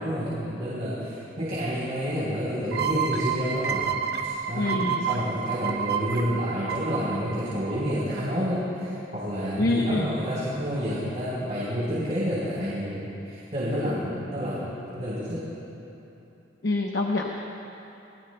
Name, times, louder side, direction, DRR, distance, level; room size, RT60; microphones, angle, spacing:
voice 1, 0.0-3.9 4.2-15.4, equal, 35° right, -9 dB, 3.8 m, -29 dB
sound 1, 2.7-8.2, right 7 dB, 50° right, 1.0 m, -30 dB
voice 2, 4.5-5.1 9.6-10.1 16.6-17.3, left 2 dB, 55° left, 0 dB, 0.9 m, -25 dB
29.0 x 20.0 x 2.2 m, 2.9 s
head